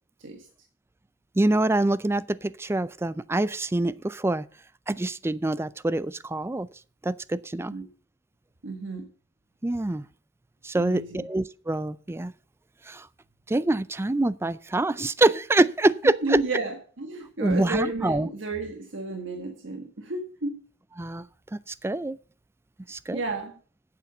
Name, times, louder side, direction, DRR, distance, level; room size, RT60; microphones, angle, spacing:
voice 1, 1.4-4.5 4.9-6.7 7.0-7.7 9.6-10.0 10.6-12.3 12.9-13.1 13.5-16.4 17.4-18.3 21.0-21.3 21.5-22.2 22.9-23.2, right 2 dB, 15° right, 0.4 m, -25 dB
voice 2, 8.6-9.1 10.7-11.3 16.0-20.7 23.1-23.6, right 2 dB, 80° right, 1.4 m, -32 dB
8.6 x 7.9 x 6.7 m
head